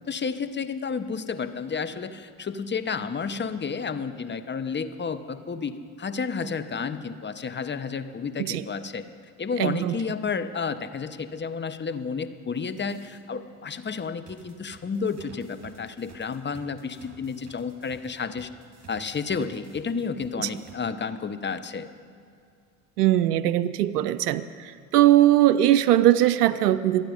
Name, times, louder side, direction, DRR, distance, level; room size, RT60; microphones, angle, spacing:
voice 1, 0.1-9.1 9.4-18.5 18.9-21.9, left 5 dB, 25° left, 11 dB, 0.9 m, -31 dB
voice 2, 9.6-10.0 20.4-20.5 23.0-27.1, right 13 dB, 90° right, 14 dB, 0.5 m, -20 dB
sound 1, 12.6-13.2 14.3-20.8, right 5 dB, 35° right, 3.0 m, -51 dB
25.5 x 9.2 x 5.1 m, 2.4 s
hypercardioid pair, 60°, 46 cm